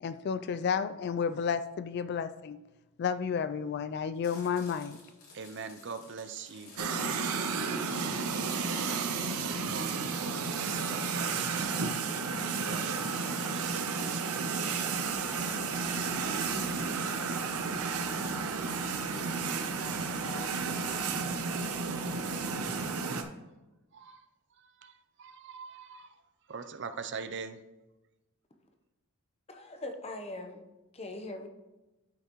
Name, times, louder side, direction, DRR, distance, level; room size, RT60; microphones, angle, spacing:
voice 1, 0.0-2.6 3.0-5.0, left 6 dB, 50° left, 12 dB, 0.3 m, -31 dB
Chewing mastication, 4.1-14.8, left 3 dB, 75° left, 2.7 m, -56 dB
voice 2, 5.3-8.8 9.4-12.0 12.5-14.6 23.9-24.2 24.6-26.2 26.5-27.6, right 5 dB, 55° right, 10 dB, 0.5 m, -44 dB
sound 1, 6.8-23.2, right 4 dB, 85° right, 0.8 m, -32 dB
sound 2, 14.5-22.9, right 2 dB, 70° right, 1.9 m, -50 dB
voice 3, 29.5-30.6 30.9-31.5, left 2 dB, 30° left, 5 dB, 0.8 m, -41 dB
11.5 x 5.6 x 3.0 m, 1.0 s
head